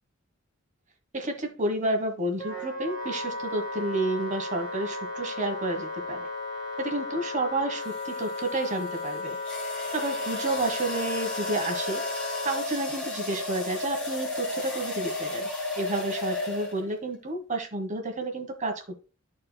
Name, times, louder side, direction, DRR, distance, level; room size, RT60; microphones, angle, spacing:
voice 1, 1.1-6.3 6.8-9.4 9.9-12.0 12.4-15.5 15.8-19.0, right 2 dB, 40° right, 1.4 m, -30 dB
Wind instrument woodwind instrument, 2.4-12.7, left 2 dB, 20° left, 2.0 m, -35 dB
sound 1, 5.9-6.2 7.8-17.0, left 2 dB, 5° left, 2.4 m, -34 dB
13.0 x 4.3 x 2.2 m
head